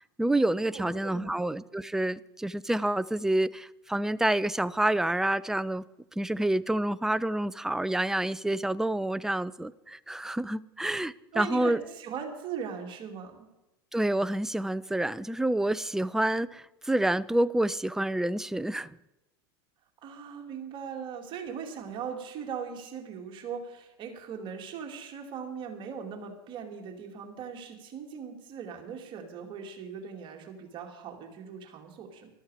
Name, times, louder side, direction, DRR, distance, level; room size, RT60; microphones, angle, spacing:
voice 1, 0.2-5.8 6.2-11.8 13.9-19.0, right 1 dB, 5° right, 0.4 m, -28 dB
voice 2, 0.7-1.3 11.3-13.4 20.0-32.3, right 7 dB, 40° right, 2.4 m, -39 dB
14.0 x 12.5 x 4.9 m
hypercardioid pair, 105°, 13 cm